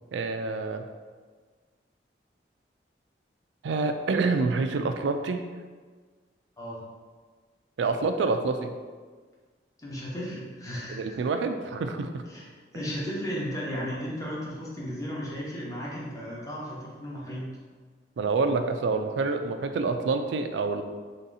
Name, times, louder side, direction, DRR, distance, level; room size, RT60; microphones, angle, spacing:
voice 1, 0.1-0.8 3.6-5.4 7.8-8.7 11.0-12.2 18.2-20.8, right 4 dB, 90° right, 7 dB, 0.3 m, -27 dB
voice 2, 9.8-11.2 12.2-12.5 12.7-17.6, equal, 20° left, -6 dB, 0.8 m, -35 dB
3.5 x 2.7 x 4.0 m, 1.5 s
head